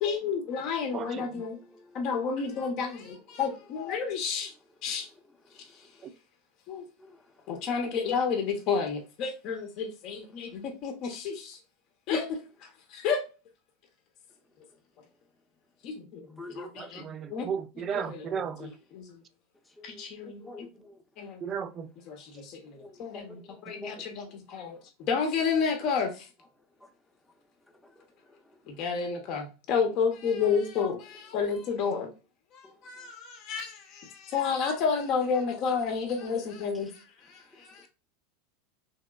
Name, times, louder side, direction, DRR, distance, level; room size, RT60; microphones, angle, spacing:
voice 1, 0.0-1.6 1.9-4.5 4.8-5.1 6.7-6.8 7.5-11.6 12.1-12.4 12.9-13.2 15.8-17.5 17.9-18.2 18.6-19.1 19.8-20.7 21.2-21.4 22.1-26.3 28.7-32.1 32.5-37.0 37.3-37.9, left 5 dB, 50° left, 0.7 m, -31 dB
voice 2, 0.9-1.4 6.0-6.1 16.8-18.7 21.4-21.9 23.7-24.1, right 7 dB, 35° right, 0.4 m, -35 dB
voice 3, 16.4-16.9 19.9-20.0 20.4-20.9 22.8-22.9 23.3-23.4 23.7-23.9, left 2 dB, 10° left, 0.6 m, -43 dB
3.0 x 2.9 x 2.3 m
hypercardioid pair, 90°, 0 cm